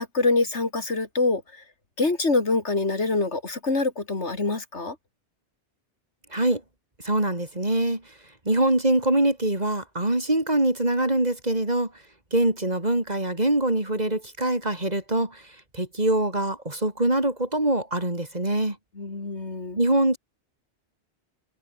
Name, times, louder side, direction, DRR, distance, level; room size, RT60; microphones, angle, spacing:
voice 1, 0.0-1.6 2.0-5.0 19.0-19.8, left 3 dB, 85° left, 3.5 m, -25 dB
voice 2, 6.3-6.6 7.0-8.0 8.5-11.9 12.3-15.4 15.7-18.8 19.8-20.2, right 1 dB, 35° right, 4.2 m, -23 dB
omnidirectional pair, 1.1 m